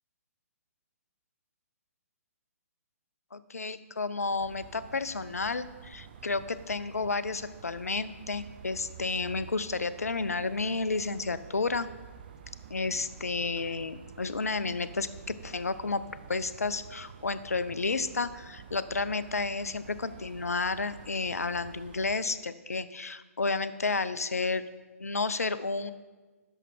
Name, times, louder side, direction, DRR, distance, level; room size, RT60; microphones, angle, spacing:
voice 1, 3.3-11.9 12.7-15.1 15.4-16.0 16.3-24.6 25.0-25.9, left 3 dB, 70° left, 14 dB, 0.5 m, -31 dB
sound 1, 4.4-22.2, right 8 dB, 35° right, 0.6 m, -49 dB
10.5 x 6.4 x 4.4 m, 1.3 s
figure-of-eight pair, 130°, 8 cm